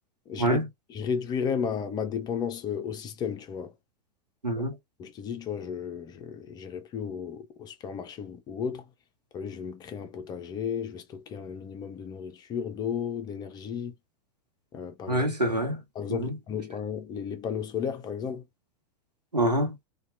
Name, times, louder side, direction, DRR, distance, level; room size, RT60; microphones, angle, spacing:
voice 1, 0.9-3.7 5.0-8.8 9.3-13.9 14.7-15.3 16.0-18.4, left 7 dB, 20° left, 0.4 m, -33 dB
voice 2, 15.1-15.8 16.1-16.4 19.3-19.7, right 1 dB, 85° right, 0.8 m, -26 dB
2.7 x 2.2 x 2.5 m
figure-of-eight pair, 95°, 20 cm